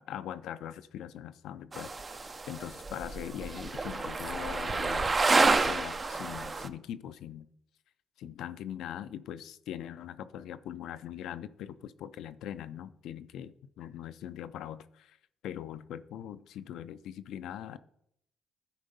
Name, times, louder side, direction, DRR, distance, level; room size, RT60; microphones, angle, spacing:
voice 1, 0.1-2.2 2.5-5.2 5.6-7.5 8.2-15.2 15.4-17.8, left 10 dB, 85° left, 13 dB, 0.4 m, -41 dB
sound 1, 1.7-6.7, right 3 dB, 30° right, 0.5 m, -29 dB
12.5 x 4.5 x 5.3 m, 0.75 s
cardioid pair, 90°, 0 cm